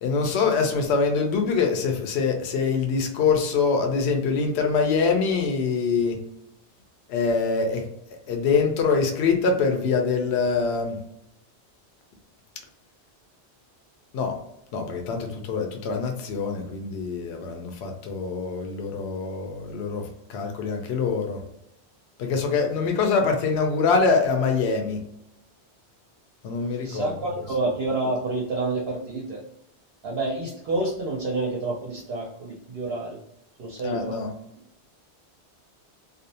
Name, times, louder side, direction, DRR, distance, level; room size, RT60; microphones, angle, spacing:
voice 1, 0.0-6.2 7.1-7.9 8.3-11.0 14.1-14.4 14.7-21.4 22.2-25.0 26.4-27.1 33.8-34.3, left 5 dB, 75° left, 3 dB, 0.8 m, -24 dB
voice 2, 26.8-29.4 30.0-33.2 33.6-34.2, right 2 dB, 70° right, -2 dB, 0.8 m, -28 dB
2.5 x 2.0 x 2.6 m, 0.80 s
omnidirectional pair, 1.1 m